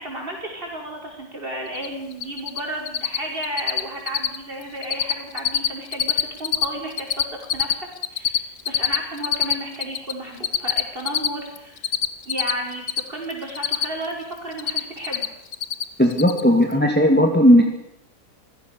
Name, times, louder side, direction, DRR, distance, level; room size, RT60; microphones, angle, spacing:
voice 1, 0.0-7.3 7.5-11.9 12.3-15.2, right 1 dB, 30° right, 0 dB, 5.9 m, -33 dB
Cricket, 1.7-1.9 2.1-2.6 2.9-3.2 3.4-4.4 4.6-5.1 5.4-6.7 6.9-10.1 10.4-13.0 13.3-14.1 14.4-15.3 15.5-15.8 16.1-16.4, left 8 dB, 50° left, 1.3 m, -22 dB
voice 2, 16.0-17.6, equal, 5° left, 3 dB, 2.0 m, -15 dB
25.5 x 16.5 x 6.9 m, 0.84 s
omnidirectional pair, 1.9 m